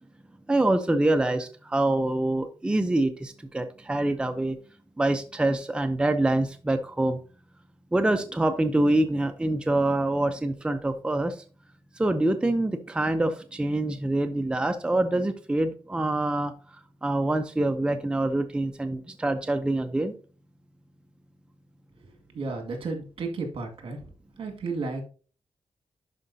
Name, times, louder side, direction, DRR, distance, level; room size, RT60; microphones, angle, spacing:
voice 1, 0.5-4.6 5.0-7.2 7.9-11.4 12.0-16.5 17.0-20.1, right 2 dB, 10° right, 7 dB, 0.6 m, -25 dB
voice 2, 22.3-24.0 24.4-25.0, right 3 dB, 70° right, 4 dB, 2.0 m, -33 dB
11.5 x 4.9 x 2.7 m, 0.38 s
wide cardioid pair, 135°, 10 cm